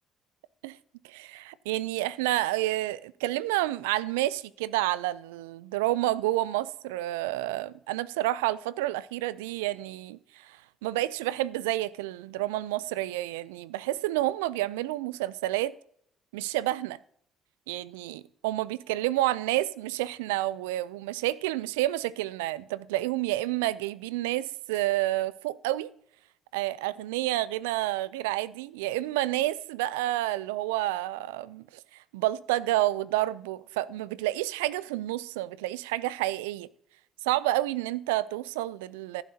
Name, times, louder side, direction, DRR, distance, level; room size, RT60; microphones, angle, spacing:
voice 1, 1.0-15.7 16.3-17.0 17.7-25.9 26.5-31.6 31.9-36.7 37.2-39.2, right 16 dB, 90° right, 0.3 m, -29 dB
14.5 x 7.6 x 2.8 m
hypercardioid pair, 60°, 0 cm